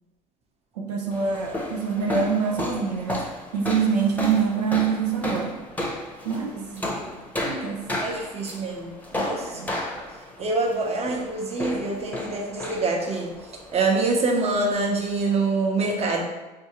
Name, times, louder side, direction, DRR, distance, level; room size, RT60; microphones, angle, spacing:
voice 1, 0.8-5.6 6.2-6.6 7.4-7.8 9.5-9.7, right 6 dB, 85° right, 1 dB, 0.5 m, -25 dB
sound 1, 1.1-15.4, left 1 dB, 10° left, 0.8 m, -34 dB
voice 2, 6.5-7.0 8.0-9.8 10.4-13.3 13.7-16.2, right 3 dB, 30° right, 1 dB, 0.8 m, -26 dB
4.3 x 2.4 x 3.0 m, 1.1 s
hypercardioid pair, 70°, 20 cm